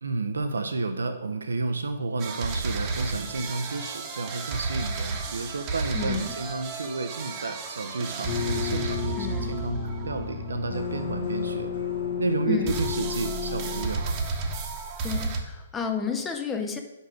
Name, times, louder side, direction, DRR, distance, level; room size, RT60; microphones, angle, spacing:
voice 1, 0.0-11.7 12.2-14.2, right 3 dB, 70° right, 8 dB, 0.5 m, -31 dB
sound 1, 2.2-12.2 12.7-15.4, right 4 dB, 30° right, 1.0 m, -33 dB
voice 2, 5.9-6.4 9.2-9.6 12.5-12.8 15.0-16.8, left 6 dB, 15° left, 5 dB, 0.5 m, -31 dB
sound 2, 8.3-13.9, left 8 dB, 55° left, 1.4 m, -32 dB
5.3 x 4.9 x 6.2 m, 1.1 s
figure-of-eight pair, 125°, 0 cm